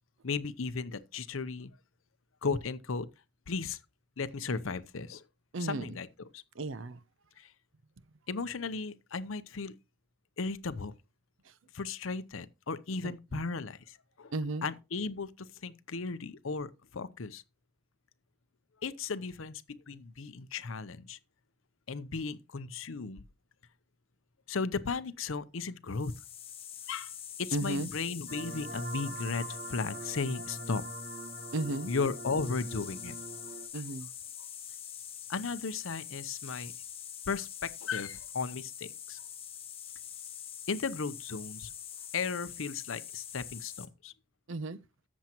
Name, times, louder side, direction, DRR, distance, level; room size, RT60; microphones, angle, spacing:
voice 1, 0.2-1.7 2.4-3.1 3.5-3.8 4.2-5.2 5.6-6.4 7.4-7.5 8.3-9.8 10.4-10.9 11.7-14.3 14.6-17.4 18.8-21.2 21.9-23.2 24.5-26.1 26.9-27.1 27.4-30.8 31.9-33.1 33.7-33.8 35.3-36.7 37.3-39.2 40.7-41.7 42.1-44.1, left 4 dB, 70° left, 0.7 m, -35 dB
voice 2, 5.5-6.0 6.6-7.0 13.0-13.4 14.3-14.7 27.5-27.9 31.5-31.9 33.7-34.1 44.5-44.8, right 2 dB, 65° right, 0.6 m, -34 dB
sound 1, 25.9-43.9, left 9 dB, 25° left, 0.8 m, -44 dB
sound 2, 28.3-33.7, right 3 dB, 40° right, 1.4 m, -43 dB
13.5 x 7.3 x 2.9 m
head